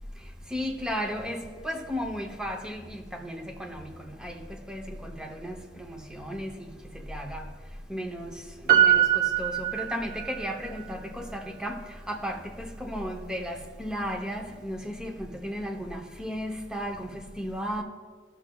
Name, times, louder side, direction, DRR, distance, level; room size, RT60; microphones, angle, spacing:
voice 1, 0.5-6.5 6.9-7.4 7.9-8.3 8.6-11.8 12.1-17.8, equal, 5° right, 0.7 m, -34 dB
Piano, 8.7-10.5 10.8-10.9, right 11 dB, 50° right, 0.8 m, -22 dB
15.5 x 6.3 x 2.3 m
head